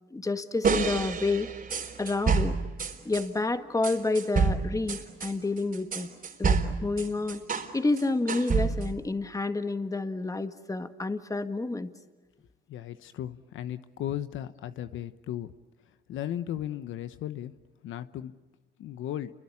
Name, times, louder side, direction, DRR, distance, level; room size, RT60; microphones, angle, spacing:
voice 1, 0.1-1.5 2.0-2.6 3.1-6.1 6.4-7.4 7.7-11.9, left 3 dB, 15° left, 8 dB, 1.8 m, -29 dB
sound 1, 0.6-3.3 3.8-7.7 8.0-9.0, right 5 dB, 45° right, 3.8 m, -28 dB
voice 2, 12.7-15.5 16.1-17.5 17.8-18.3 18.8-19.3, left 11 dB, 80° left, 12 dB, 1.1 m, -36 dB
29.5 x 23.5 x 8.6 m, 1.2 s
cardioid pair, 90°, 20 cm